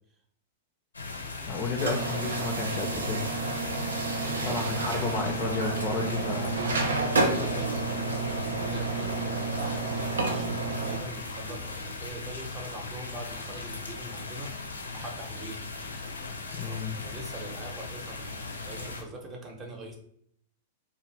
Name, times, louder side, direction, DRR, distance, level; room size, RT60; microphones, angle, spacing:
sound 1, 0.9-19.0, left 3 dB, 90° left, 0.5 m, -38 dB
voice 1, 1.5-3.2 4.3-6.6 16.5-17.0, left 4 dB, 35° left, 4 dB, 0.4 m, -32 dB
sound 2, 1.8-11.0, right 3 dB, 80° right, 0.5 m, -30 dB
voice 2, 4.2-4.8 6.0-6.2 7.1-14.5 14.9-15.6 16.6-20.0, right 2 dB, 25° right, 1 dB, 0.7 m, -43 dB
2.6 x 2.4 x 3.1 m, 0.67 s
figure-of-eight pair, 100°, 0 cm